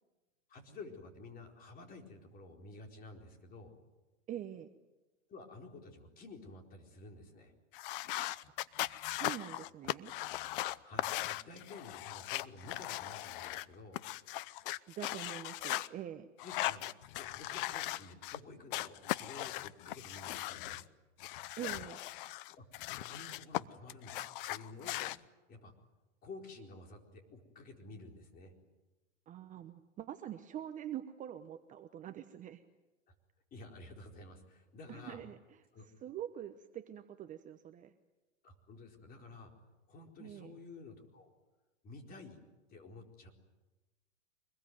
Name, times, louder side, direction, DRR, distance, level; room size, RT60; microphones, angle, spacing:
voice 1, 0.5-3.7 5.3-7.5 10.8-14.0 16.4-16.8 17.1-20.9 22.6-25.0 25.5-25.7 26.2-28.5 33.5-35.2 35.7-35.9 38.4-39.5 39.9-41.3 41.8-42.4 42.7-43.3, left 3 dB, 25° left, 3 dB, 4.4 m, -52 dB
voice 2, 4.3-4.7 9.2-10.1 14.9-16.3 21.6-22.0 29.3-32.6 34.9-35.4 36.0-37.9 40.2-40.5, right 11 dB, 20° right, 8 dB, 0.9 m, -44 dB
sound 1, 7.7-13.6 13.9-15.9 16.4-18.4 18.7-20.8 21.2-23.6 23.9-25.2, left 16 dB, 45° left, 0.8 m, -39 dB
25.0 x 21.5 x 9.4 m, 1.1 s
hypercardioid pair, 140°, 38 cm